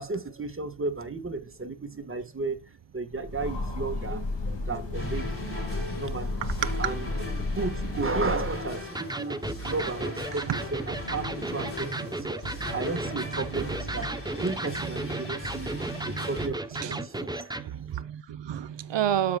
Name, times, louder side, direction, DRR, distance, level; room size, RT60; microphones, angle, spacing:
voice 1, 0.0-15.7 16.0-17.6, right 3 dB, 25° right, 1.3 m, -34 dB
Train, 3.1-8.8, left 2 dB, 65° left, 1.8 m, -33 dB
sound 1, 4.9-16.5, left 1 dB, 30° left, 2.8 m, -38 dB
Electric guitar, 8.9-17.7, right 2 dB, 10° right, 0.6 m, -35 dB
voice 2, 15.7-16.3 16.8-17.0 17.8-19.4, right 10 dB, 70° right, 0.7 m, -30 dB
13.0 x 4.9 x 2.2 m
wide cardioid pair, 85°, 46 cm